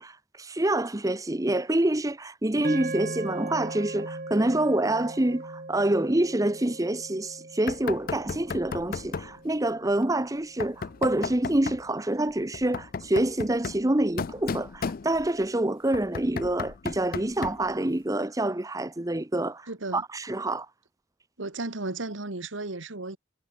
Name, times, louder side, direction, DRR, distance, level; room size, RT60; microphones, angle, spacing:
voice 1, 0.0-20.7, right 1 dB, 15° right, 0.8 m, -27 dB
sound 1, 2.6-11.0, right 2 dB, 45° right, 1.8 m, -39 dB
Knock, 7.7-9.4 10.6-11.9 12.5-15.4 15.9-17.7, left 5 dB, 45° left, 0.4 m, -35 dB
voice 2, 19.7-20.0 21.4-23.2, right 2 dB, 80° right, 1.9 m, -34 dB
head